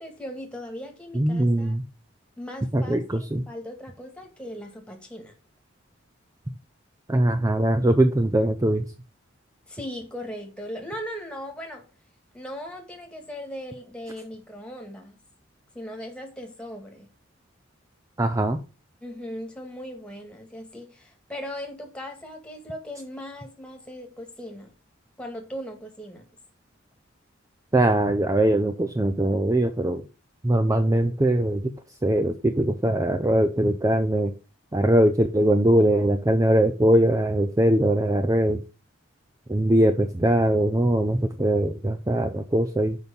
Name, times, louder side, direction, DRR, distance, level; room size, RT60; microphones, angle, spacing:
voice 1, 0.0-1.8 2.4-5.4 9.7-11.9 12.3-15.2 15.7-17.1 19.0-24.7 25.2-26.3, equal, 5° left, 2.0 m, -38 dB
voice 2, 1.1-1.8 2.7-3.5 7.1-8.8 18.2-18.6 27.7-30.0 30.4-31.7 32.0-34.3 34.7-38.6 39.5-43.0, right 1 dB, 15° right, 0.5 m, -21 dB
6.2 x 5.4 x 6.9 m
head